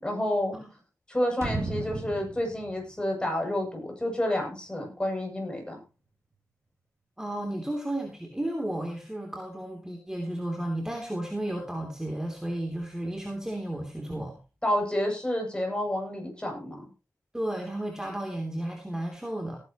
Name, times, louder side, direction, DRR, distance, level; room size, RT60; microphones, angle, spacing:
voice 1, 0.0-0.6 1.1-5.8 14.6-16.8, left 1 dB, 15° left, 2 dB, 7.7 m, -29 dB
sound 1, 1.4-4.2 4.5-4.6, right 3 dB, 45° right, 2.8 m, -36 dB
voice 2, 7.2-14.3 17.3-19.6, right 1 dB, 10° right, 2 dB, 3.2 m, -33 dB
18.0 x 10.5 x 3.1 m, 0.30 s
cardioid pair, 60°, 6 cm